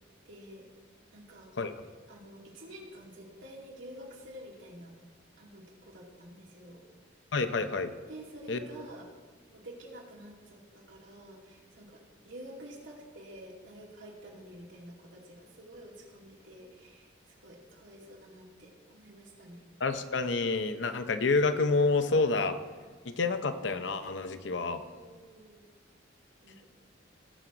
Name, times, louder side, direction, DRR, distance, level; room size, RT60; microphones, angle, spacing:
voice 1, 0.3-0.7 1.1-1.5 2.1-4.9 5.4-6.8 8.1-9.1 9.5-19.6 24.7-25.7 26.4-26.6, right 1 dB, 80° right, -2 dB, 2.5 m, -49 dB
voice 2, 7.3-7.9 8.5-8.6 19.8-22.6 23.1-24.8, left 3 dB, 65° left, 9 dB, 0.7 m, -28 dB
18.5 x 6.3 x 3.9 m, 1.5 s
head